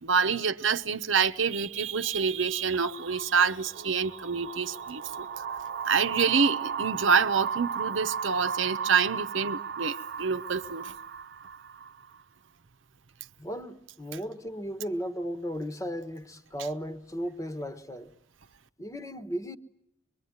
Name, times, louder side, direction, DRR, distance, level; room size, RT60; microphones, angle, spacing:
voice 1, 0.0-5.4 5.8-10.9, right 6 dB, 80° right, 1.0 m, -27 dB
sound 1, 2.7-12.2, right 7 dB, 55° right, 1.0 m, -36 dB
voice 2, 13.4-18.1 18.8-19.6, equal, 15° left, 1.2 m, -35 dB
25.0 x 23.5 x 9.5 m
head